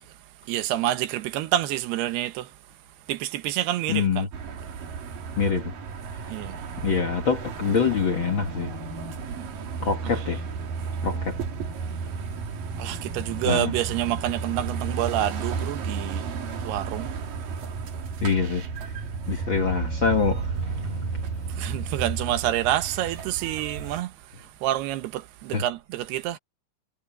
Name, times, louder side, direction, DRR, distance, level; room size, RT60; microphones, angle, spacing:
voice 1, 0.5-2.5 3.1-4.3 6.3-6.6 12.8-16.3 16.6-17.1 21.5-24.1 24.6-26.4, right 13 dB, 90° right, 3.1 m, -28 dB
voice 2, 3.9-4.3 5.4-5.7 6.2-6.3 6.8-8.7 9.8-10.4 11.0-11.4 13.4-13.7 18.2-18.9 19.3-20.9 25.5-25.6, left 5 dB, 65° left, 1.2 m, -25 dB
sound 1, 4.3-24.0, right 5 dB, 60° right, 4.0 m, -33 dB
omnidirectional pair, 4.5 m